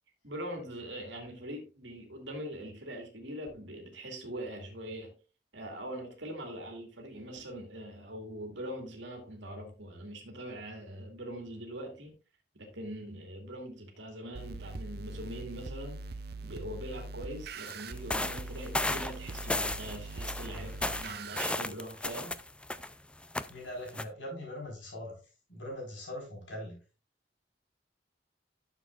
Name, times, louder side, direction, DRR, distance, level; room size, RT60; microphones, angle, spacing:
voice 1, 0.2-5.1 5.5-12.1 12.6-16.1 16.4-22.4, right 1 dB, 75° right, 2.3 m, -42 dB
sound 1, 14.3-21.5, right 3 dB, 60° right, 0.6 m, -42 dB
sound 2, 17.7-22.9 23.2-23.5 23.9-24.0, left 2 dB, 5° left, 0.4 m, -34 dB
voice 2, 23.5-25.1 25.5-26.8, left 1 dB, 85° left, 4.5 m, -41 dB
11.5 x 7.1 x 2.4 m
head